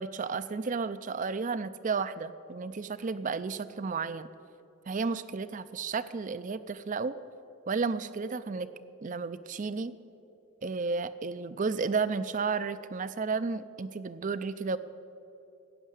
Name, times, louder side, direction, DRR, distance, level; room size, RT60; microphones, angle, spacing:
voice 1, 0.0-4.3 4.9-7.1 7.7-8.7 9.0-10.0 10.6-14.8, right 4 dB, 35° right, 14 dB, 0.4 m, -32 dB
13.0 x 9.3 x 8.1 m, 2.8 s
head